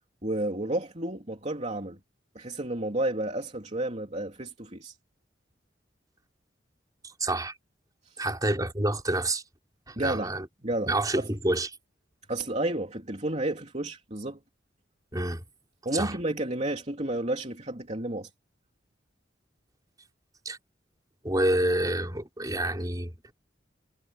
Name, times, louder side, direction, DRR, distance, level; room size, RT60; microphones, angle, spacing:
voice 1, 0.2-2.0 2.3-4.9 8.0-8.2 10.0-10.3 10.6-11.3 12.3-14.4 15.8-18.3, right 1 dB, 35° right, 3.1 m, -31 dB
voice 2, 7.0-7.5 8.2-9.4 9.9-10.5 10.8-11.7 15.1-15.4 15.9-16.1 20.4-20.6 21.2-23.3, right 1 dB, 20° right, 4.9 m, -28 dB
head